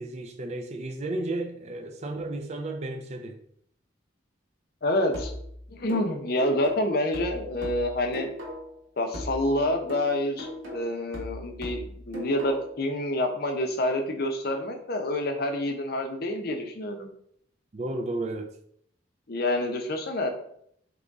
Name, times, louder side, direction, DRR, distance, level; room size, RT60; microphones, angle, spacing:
voice 1, 0.0-3.4 17.7-18.5, right 2 dB, 35° right, 4 dB, 0.4 m, -33 dB
voice 2, 4.8-5.3 5.7-8.3 9.0-17.1 19.3-20.3, left 1 dB, 50° left, 4 dB, 0.6 m, -27 dB
sound 1, 5.1-8.8 9.1-12.8, left 1 dB, 80° right, 1.2 m, -39 dB
3.9 x 3.0 x 3.5 m, 0.67 s
head